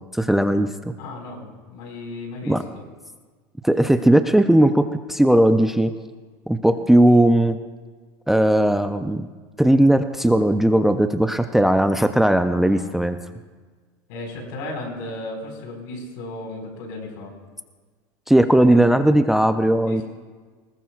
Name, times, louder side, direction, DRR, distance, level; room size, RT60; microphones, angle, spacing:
voice 1, 0.1-0.9 2.5-2.6 3.6-4.8 5.1-5.9 6.5-7.6 8.3-9.3 9.6-13.2 18.3-20.0, right 1 dB, 5° right, 8 dB, 0.4 m, -17 dB
voice 2, 1.0-2.8 12.7-13.0 14.1-17.3 18.6-19.0 19.9-20.0, left 2 dB, 80° left, 1 dB, 4.6 m, -35 dB
20.0 x 18.5 x 2.4 m, 1.4 s
cardioid pair, 160°, 11 cm